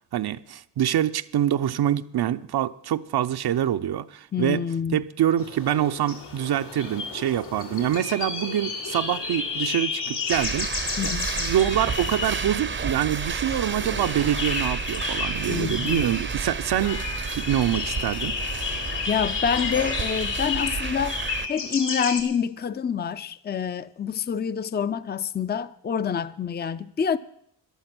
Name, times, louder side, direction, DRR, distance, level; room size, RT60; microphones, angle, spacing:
voice 1, 0.1-4.6 4.9-17.0 17.3-18.4, right 11 dB, 65° right, 0.7 m, -25 dB
voice 2, 4.3-5.0 11.0-11.3 15.5-16.1 19.1-21.2 21.5-27.2, left 7 dB, 25° left, 0.5 m, -27 dB
sound 1, 5.4-22.2, left 5 dB, 80° left, 2.9 m, -32 dB
sound 2, 10.3-21.5, right 5 dB, 30° right, 0.6 m, -31 dB
14.0 x 11.5 x 6.0 m
cardioid pair, 60°, 41 cm